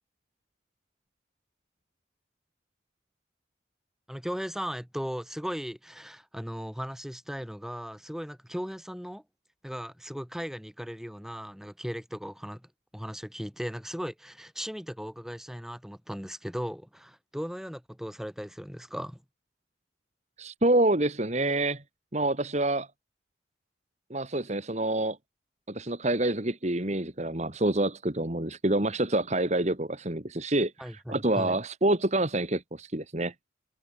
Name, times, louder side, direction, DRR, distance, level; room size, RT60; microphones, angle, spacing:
voice 1, 4.1-9.2 9.6-19.2 30.8-31.6, equal, ahead, 4.7 m, -37 dB
voice 2, 20.4-21.8 22.1-22.9 24.1-25.2 25.7-30.7 31.1-33.3, right 1 dB, 35° right, 2.0 m, -27 dB
head